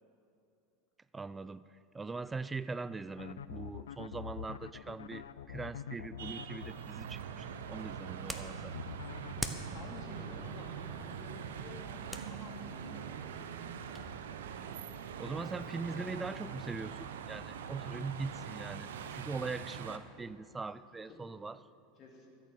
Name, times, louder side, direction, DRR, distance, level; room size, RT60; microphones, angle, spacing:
voice 1, 1.1-1.6 1.9-8.8 15.2-21.6, right 4 dB, 15° right, 16 dB, 0.3 m, -41 dB
sound 1, 3.2-6.7 8.7-9.4, left 10 dB, 75° left, 0.4 m, -44 dB
sound 2, 6.2-20.0, right 7 dB, 70° right, 0.8 m, -43 dB
sound 3, 7.4-14.1, equal, ahead, 1.0 m, -47 dB
voice 2, 9.7-13.4 15.6-15.7 16.0-16.1 20.6-20.8 21.1-21.4 22.0-22.3, left 3 dB, 40° left, 0 dB, 2.7 m, -53 dB
14.0 x 6.9 x 9.2 m, 2.7 s
figure-of-eight pair, 85°, 0 cm